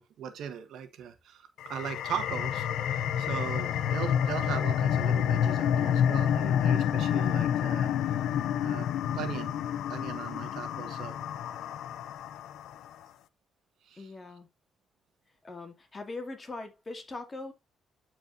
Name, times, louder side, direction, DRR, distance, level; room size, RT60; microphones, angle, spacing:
voice 1, 0.0-7.9 8.6-8.9 9.1-9.5 9.9-11.2 13.9-14.1, right 8 dB, 75° right, 1.4 m, -39 dB
sound 1, 1.6-12.8, left 9 dB, 80° left, 0.6 m, -28 dB
voice 2, 14.0-14.5 15.4-17.5, left 3 dB, 30° left, 2.3 m, -41 dB
12.0 x 4.7 x 2.6 m
cardioid pair, 90°, 0 cm